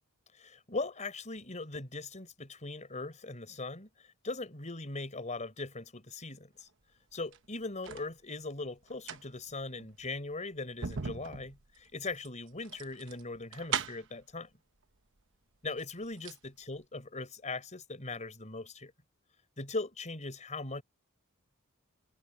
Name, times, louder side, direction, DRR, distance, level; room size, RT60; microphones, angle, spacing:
voice 1, 0.4-3.9 4.2-6.7 7.1-14.5 15.6-18.9 19.6-20.8, left 3 dB, 35° left, 4.5 m, -40 dB
sound 1, 7.1-8.1 8.8-14.2 15.2-15.3 15.7-16.5 16.8-16.9, right 6 dB, 60° right, 1.1 m, -40 dB
head